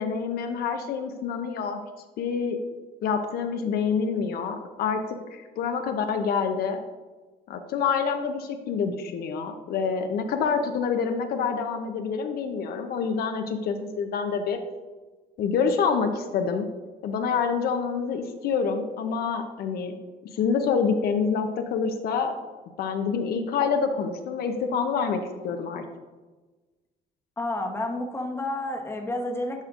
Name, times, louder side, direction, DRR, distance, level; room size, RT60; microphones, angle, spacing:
voice 1, 0.0-1.8 2.2-2.6 3.0-5.0 5.3-6.8 7.5-14.6 15.4-16.7 17.0-19.9 20.3-22.3 22.8-25.8, left 6 dB, 65° left, 6 dB, 0.6 m, -27 dB
voice 2, 27.4-29.6, left 1 dB, 15° left, 2 dB, 0.9 m, -30 dB
10.5 x 5.0 x 2.5 m, 1.3 s
cardioid pair, 110°, 17 cm